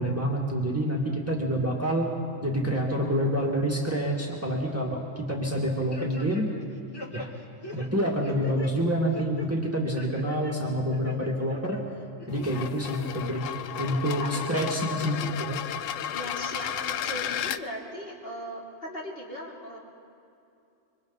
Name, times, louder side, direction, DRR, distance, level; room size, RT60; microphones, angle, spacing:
voice 1, 0.0-2.1 2.4-6.5 7.1-7.3 7.7-11.8 12.3-13.5 13.8-15.6, equal, 10° right, -2 dB, 2.0 m, -27 dB
sound 1, 5.9-6.6 6.9-8.7 9.1-9.5 10.0-10.5 10.9-11.8 12.2-12.8 13.3-13.4 14.0-14.6 15.0-15.1, left 3 dB, 20° left, 1.4 m, -40 dB
sound 2, 12.3-17.6, left 10 dB, 80° left, 1.0 m, -33 dB
voice 2, 14.2-15.1 16.1-19.8, equal, 45° left, -4 dB, 3.6 m, -39 dB
26.0 x 24.5 x 4.1 m, 2.7 s
omnidirectional pair, 1.3 m